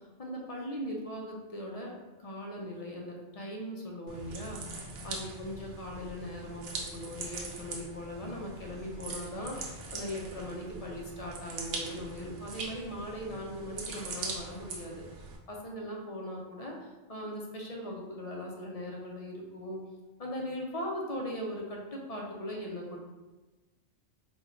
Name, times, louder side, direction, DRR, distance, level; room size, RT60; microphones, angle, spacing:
voice 1, 0.2-4.6 5.0-19.8 20.2-23.0, equal, 45° left, -1 dB, 0.5 m, -39 dB
sound 1, 4.1-15.4, right 3 dB, 80° right, 1.0 m, -42 dB
4.3 x 2.2 x 3.6 m, 1.2 s
omnidirectional pair, 1.2 m